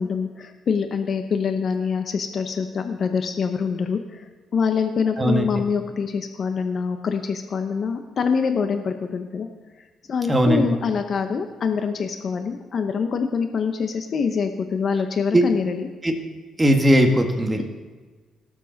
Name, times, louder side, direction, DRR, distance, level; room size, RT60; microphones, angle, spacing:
voice 1, 0.0-4.2 4.5-9.5 10.1-15.9, left 5 dB, 55° left, 6 dB, 0.9 m, -25 dB
voice 2, 10.3-10.7 15.3-15.4 16.0-16.1 16.6-17.6, right 1 dB, 15° right, 3 dB, 1.8 m, -18 dB
18.0 x 7.4 x 4.1 m, 1.4 s
cardioid pair, 90°, 0 cm